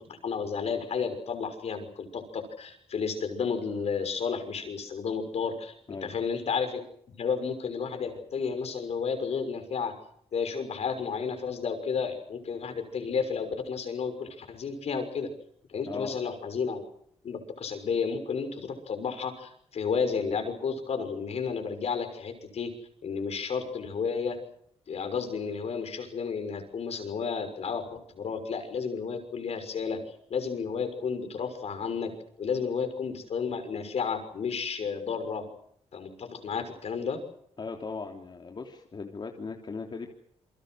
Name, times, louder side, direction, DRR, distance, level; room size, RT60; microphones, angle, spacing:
voice 1, 0.0-6.8 7.2-9.9 10.3-15.3 15.7-16.8 17.2-22.7 23.0-24.4 24.9-30.0 30.3-32.1 32.4-35.5 35.9-37.2, left 5 dB, 65° left, 7 dB, 6.2 m, -32 dB
voice 2, 15.9-16.2 37.6-40.1, left 4 dB, 40° left, 2 dB, 3.3 m, -38 dB
28.5 x 24.0 x 6.4 m, 0.68 s
cardioid pair, 95°, 12 cm